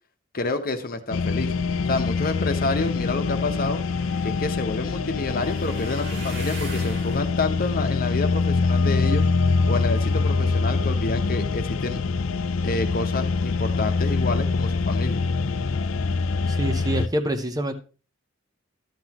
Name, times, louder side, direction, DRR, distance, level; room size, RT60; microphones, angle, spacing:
voice 1, 0.3-1.5 1.9-3.8 4.2-9.3 9.7-12.0 12.6-15.2, left 3 dB, 45° left, 7 dB, 1.0 m, -28 dB
sound 1, 1.1-17.1, left 4 dB, 75° left, 0.5 m, -24 dB
sound 2, 3.5-9.6 10.1-10.6 11.0-11.2 11.5-11.6, right 3 dB, 60° right, 2.2 m, -43 dB
voice 2, 16.5-17.7, right 1 dB, 20° right, 8 dB, 0.7 m, -26 dB
12.0 x 7.9 x 2.9 m, 0.36 s
head